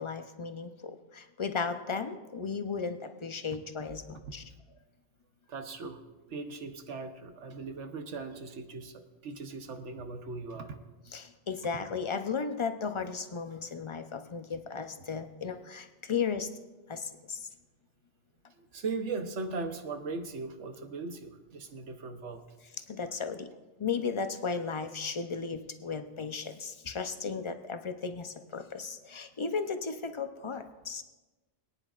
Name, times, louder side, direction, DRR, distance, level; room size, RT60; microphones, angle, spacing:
voice 1, 0.0-4.4 11.1-16.5 16.9-17.5 22.8-23.5 23.8-31.0, left 5 dB, 35° left, 8 dB, 0.5 m, -35 dB
voice 2, 5.5-6.0 6.3-10.8 18.6-22.4, right 4 dB, 85° right, 6 dB, 1.3 m, -39 dB
22.5 x 9.9 x 2.5 m, 1.2 s
omnidirectional pair, 1.2 m